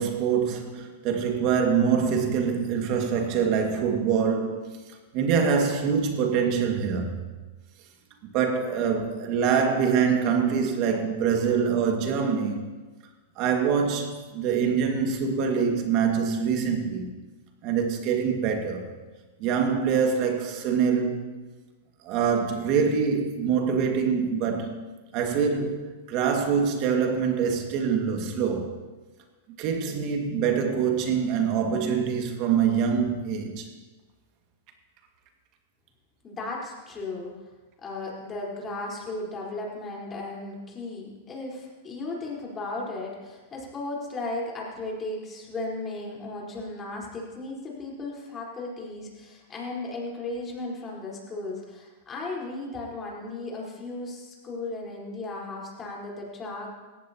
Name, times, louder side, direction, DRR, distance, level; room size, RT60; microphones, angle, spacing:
voice 1, 0.0-7.2 8.3-12.7 13.4-17.1 17.6-18.9 19.4-21.3 22.0-24.8 25.1-28.8 29.6-33.7, right 6 dB, 45° right, 2.0 m, -25 dB
voice 2, 36.2-37.3 37.8-56.7, left 2 dB, 25° left, 4.3 m, -35 dB
18.0 x 15.0 x 2.9 m
hypercardioid pair, 110°, 0 cm